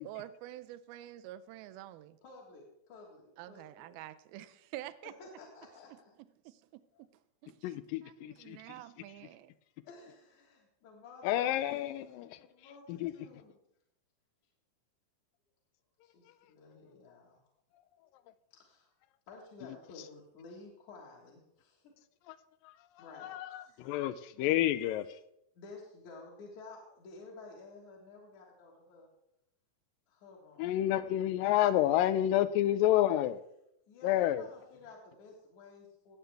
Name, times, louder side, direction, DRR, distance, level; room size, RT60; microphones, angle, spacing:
voice 1, 0.0-2.2 3.4-5.1 6.5-7.1 7.4-7.6 8.0-9.5, right 14 dB, 85° right, 2.5 m, -47 dB
voice 2, 2.2-3.9 5.0-6.1 9.8-11.8 12.4-13.5 16.0-17.5 18.5-18.9 19.3-21.9 23.0-23.3 23.6-24.0 25.5-29.1 30.1-30.7 33.9-36.2, left 3 dB, 60° left, 2.7 m, -53 dB
voice 3, 7.6-8.8 11.2-12.5 12.9-13.1 16.3-16.4 17.1-17.2 22.3-22.4 22.6-25.2 30.6-33.4 34.0-34.4, left 13 dB, 80° left, 2.1 m, -30 dB
18.5 x 7.8 x 3.4 m
omnidirectional pair, 4.3 m